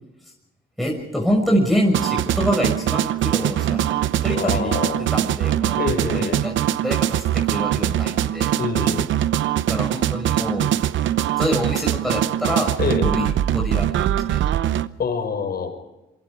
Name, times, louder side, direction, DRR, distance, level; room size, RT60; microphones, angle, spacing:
voice 1, 0.8-5.8 6.1-6.6 6.8-8.6 9.7-10.7 11.4-14.4, equal, ahead, -1 dB, 6.0 m, -26 dB
sound 1, 1.9-14.9, right 11 dB, 75° right, 0.9 m, -22 dB
voice 2, 4.3-5.1 5.7-6.4 8.6-9.1 12.8-13.1 15.0-15.7, left 5 dB, 50° left, 7 dB, 5.5 m, -26 dB
26.5 x 23.5 x 4.9 m, 0.97 s
cardioid pair, 90°, 20 cm